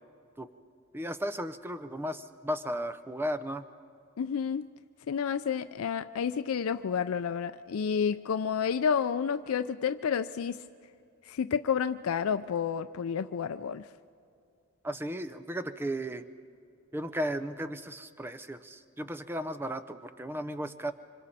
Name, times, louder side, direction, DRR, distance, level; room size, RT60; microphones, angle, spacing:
voice 1, 0.9-3.6 14.8-16.3 16.9-20.9, equal, 10° right, 11 dB, 0.5 m, -35 dB
voice 2, 4.2-4.7 5.1-10.6 11.3-13.8, left 7 dB, 80° left, 11 dB, 0.4 m, -30 dB
26.0 x 26.0 x 4.2 m, 2.5 s
head